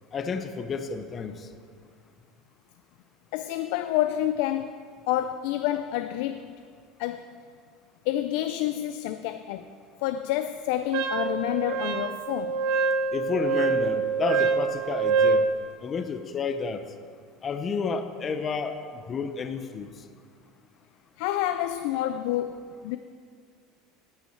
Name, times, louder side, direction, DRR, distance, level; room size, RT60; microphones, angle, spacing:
voice 1, 0.1-1.5 13.1-15.5 15.8-16.8 17.4-19.9, left 5 dB, 25° left, 9 dB, 0.7 m, -31 dB
voice 2, 3.3-4.8 5.1-6.6 7.0-7.4 8.1-9.7 10.0-12.6 21.2-23.0, left 12 dB, 70° left, 10 dB, 0.4 m, -28 dB
Wind instrument woodwind instrument, 10.9-15.5, right 5 dB, 60° right, 0.9 m, -25 dB
8.9 x 8.4 x 7.8 m, 2.1 s
cardioid pair, 155°, 0 cm